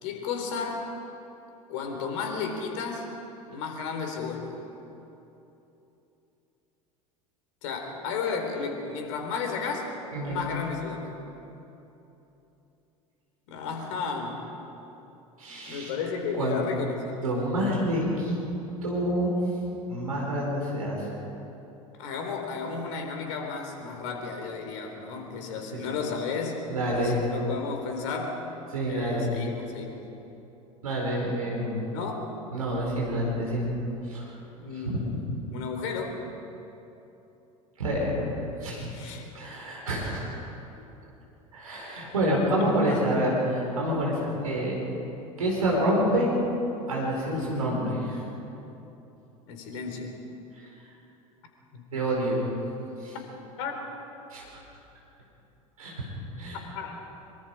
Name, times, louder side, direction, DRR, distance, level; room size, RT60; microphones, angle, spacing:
voice 1, 0.0-0.9 1.7-3.1 3.5-4.6 7.6-9.9 10.2-11.2 13.5-14.4 15.5-17.2 22.0-26.7 26.9-28.4 28.9-29.9 31.9-32.2 34.6-36.2 38.9-39.2 42.2-42.3 42.9-43.0 49.5-50.1 51.7-51.9 53.6-53.8 56.7-57.0, left 5 dB, 60° left, 3 dB, 4.1 m, -33 dB
voice 2, 10.1-10.5 15.4-15.9 16.4-16.6 17.2-18.4 18.8-19.4 19.9-21.1 26.7-27.2 28.7-29.3 30.8-31.9 32.5-33.7 34.1-34.3 34.7-35.0 37.8-38.3 38.6-38.9 39.3-40.3 41.5-44.8 45.4-46.3 46.9-48.2 50.5-50.7 51.9-52.4 53.0-53.2 54.3-54.6 55.8-55.9 56.4-56.6, equal, 80° right, -3 dB, 4.8 m, -27 dB
24.0 x 24.0 x 4.9 m, 3.0 s
figure-of-eight pair, 75°, 18 cm